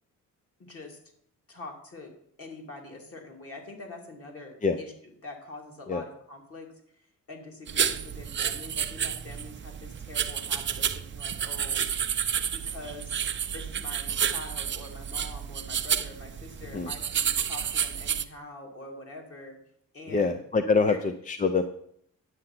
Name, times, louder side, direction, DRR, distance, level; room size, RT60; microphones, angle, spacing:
voice 1, 0.6-1.0 1.5-4.9 5.2-6.7 7.3-11.8 12.5-13.2 13.5-19.6 19.9-20.4 20.9-21.0, left 2 dB, 40° left, 1 dB, 2.4 m, -44 dB
sound 1, 7.7-18.2, right 8 dB, 35° right, 0.5 m, -30 dB
voice 2, 20.1-21.6, left 4 dB, 25° left, 9 dB, 0.4 m, -25 dB
9.7 x 7.8 x 5.8 m, 0.69 s
cardioid pair, 150°, 34 cm